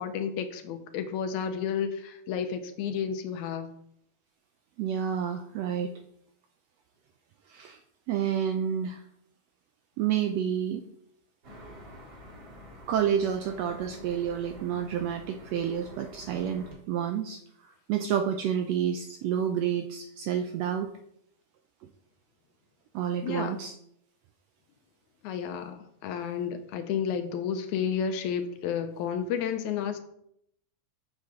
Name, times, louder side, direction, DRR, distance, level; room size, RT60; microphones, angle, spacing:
voice 1, 0.0-3.7 23.2-23.6 25.2-30.0, left 7 dB, 80° left, 9 dB, 2.0 m, -31 dB
voice 2, 4.8-5.9 7.5-7.8 8.1-9.0 10.0-10.8 12.9-20.9 22.9-23.7, right 9 dB, 80° right, 6 dB, 1.4 m, -29 dB
sound 1, 11.4-16.7, left 1 dB, 45° right, 2.4 m, -48 dB
7.6 x 6.5 x 3.6 m, 0.73 s
omnidirectional pair, 3.4 m